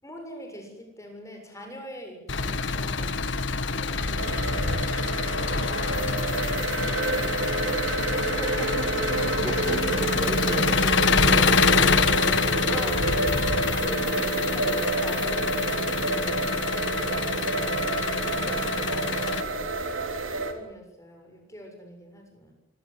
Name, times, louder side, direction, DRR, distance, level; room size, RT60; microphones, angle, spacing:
voice 1, 0.0-3.2 3.7-4.8 5.5-6.2 8.1-9.9 12.7-16.6 17.0-17.3 17.8-19.8 20.3-22.5, equal, 15° left, 3 dB, 7.1 m, -43 dB
Engine, 2.3-19.4, left 4 dB, 65° left, 1.5 m, -26 dB
sound 1, 4.2-20.5, right 3 dB, 85° right, 3.7 m, -29 dB
voice 2, 9.4-11.8 13.8-13.9 17.2-17.4, right 1 dB, 20° right, 5 dB, 1.9 m, -36 dB
25.0 x 18.0 x 9.7 m, 0.93 s
head